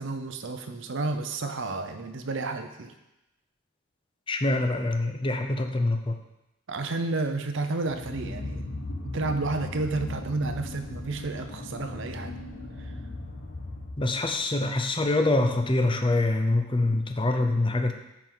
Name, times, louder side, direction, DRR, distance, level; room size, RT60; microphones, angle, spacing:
voice 1, 0.0-2.9 6.7-8.6 9.0-12.3 12.8-12.9, right 3 dB, 60° right, 7 dB, 0.6 m, -31 dB
voice 2, 4.3-6.2 14.0-17.9, left 2 dB, 25° left, 5 dB, 0.5 m, -25 dB
sound 1, 7.8-14.4, left 2 dB, 55° left, 1.2 m, -38 dB
9.6 x 4.5 x 3.9 m, 0.94 s
head